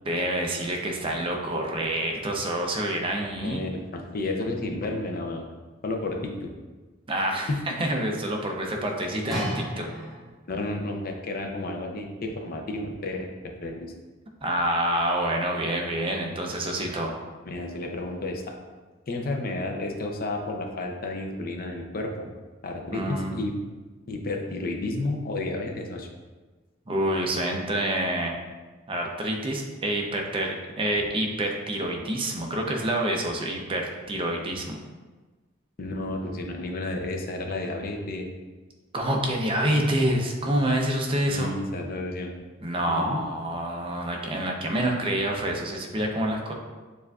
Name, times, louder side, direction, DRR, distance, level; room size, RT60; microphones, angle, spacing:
voice 1, 0.0-3.6 7.1-9.9 14.4-17.1 22.9-23.3 26.9-28.3 28.9-34.8 38.9-41.5 42.6-46.5, right 1 dB, 30° right, 1 dB, 0.5 m, -27 dB
voice 2, 3.4-5.5 5.8-6.5 7.5-7.7 10.5-13.3 13.6-13.9 17.5-18.5 19.1-22.3 22.6-23.5 24.1-26.1 35.8-38.3 41.3-42.3 42.9-43.2, left 2 dB, 50° left, 3 dB, 0.5 m, -31 dB
sound 1, 9.3-10.6 11.3-11.4, equal, ahead, 1.0 m, -33 dB
6.6 x 2.5 x 2.3 m, 1.3 s
head